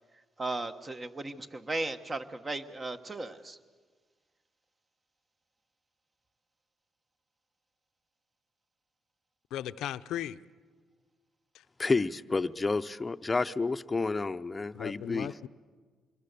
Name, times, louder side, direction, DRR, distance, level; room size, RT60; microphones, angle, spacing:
voice 1, 0.4-3.6, right 2 dB, 30° right, 1.3 m, -36 dB
voice 2, 9.5-10.4 11.5-11.6 14.7-15.5, left 11 dB, 85° left, 0.6 m, -37 dB
voice 3, 11.8-15.3, left 3 dB, 25° left, 0.7 m, -30 dB
26.5 x 22.0 x 6.9 m
cardioid pair, 80°, 0 cm